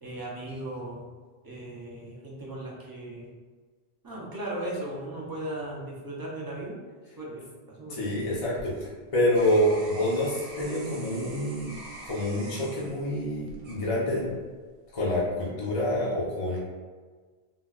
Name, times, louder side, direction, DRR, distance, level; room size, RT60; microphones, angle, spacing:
voice 1, 0.0-1.0 1.4-3.3 4.0-6.8 7.2-7.4 7.8-8.1, right 1 dB, 25° right, -5 dB, 0.5 m, -37 dB
voice 2, 7.9-11.8 12.1-14.3 14.9-16.6, left 1 dB, 40° left, -7 dB, 0.6 m, -27 dB
sound 1, 8.6-14.4 14.9-15.4, right 1 dB, 80° right, 1.0 m, -46 dB
3.6 x 2.1 x 2.3 m, 1.4 s
omnidirectional pair, 1.1 m